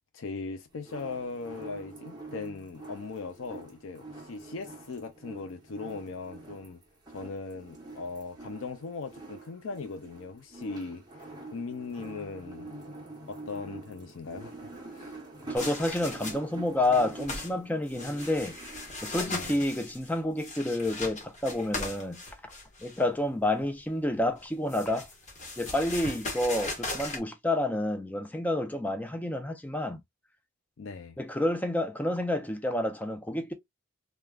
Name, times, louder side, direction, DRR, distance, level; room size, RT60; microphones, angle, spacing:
voice 1, 0.1-6.8 7.1-12.8 13.3-15.2 19.3-19.6 30.8-31.2, left 4 dB, 70° left, 0.5 m, -39 dB
sound 1, 0.8-19.5, right 2 dB, 20° right, 1.0 m, -46 dB
sound 2, 15.5-16.5 16.8-17.5 17.9-23.0 24.4-27.2, left 2 dB, 35° left, 1.1 m, -38 dB
voice 2, 15.5-18.6 19.0-22.2 22.8-25.1 25.6-30.0 31.2-33.5, left 1 dB, 10° left, 0.5 m, -29 dB
3.3 x 2.3 x 2.2 m
head